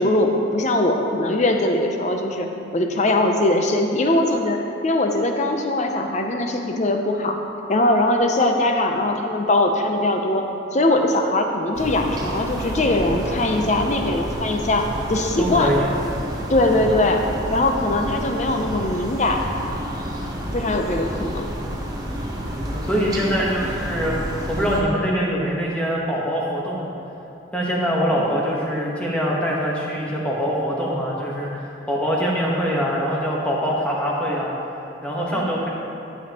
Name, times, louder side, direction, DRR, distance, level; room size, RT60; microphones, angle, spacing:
voice 1, 0.0-2.5 2.7-7.4 7.7-10.4 10.7-15.7 16.5-19.5 20.5-21.5 28.1-28.2 35.3-35.4, left 1 dB, 35° left, 4 dB, 0.6 m, -21 dB
sound 1, 11.7-24.8, equal, 20° right, 0.9 m, -30 dB
voice 2, 15.4-15.8 22.8-24.2 24.5-26.9 27.5-31.6 31.9-34.5 35.0-35.7, equal, 5° left, -4 dB, 1.1 m, -23 dB
11.5 x 7.2 x 2.9 m, 2.8 s
head